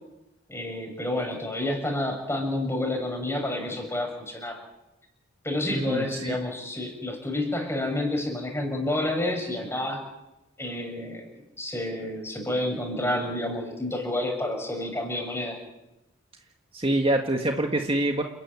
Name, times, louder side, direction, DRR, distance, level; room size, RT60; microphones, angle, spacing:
voice 1, 0.5-4.6 5.4-10.0 10.6-11.3 11.6-15.6, left 1 dB, 15° left, 3 dB, 6.6 m, -29 dB
voice 2, 5.7-6.3 16.7-18.2, right 1 dB, 30° right, 3 dB, 1.6 m, -25 dB
29.5 x 13.0 x 9.7 m, 0.93 s
head